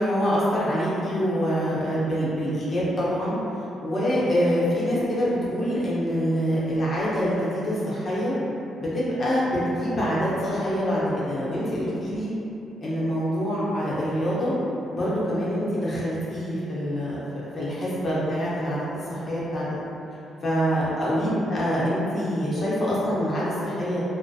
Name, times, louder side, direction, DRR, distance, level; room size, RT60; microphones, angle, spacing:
voice 1, 0.0-3.4 3.8-8.3 8.8-12.3 12.8-14.5 14.9-19.6 20.4-24.0, equal, 40° left, -8 dB, 0.7 m, -25 dB
2.3 x 2.1 x 2.6 m, 2.9 s
cardioid pair, 90°, 0 cm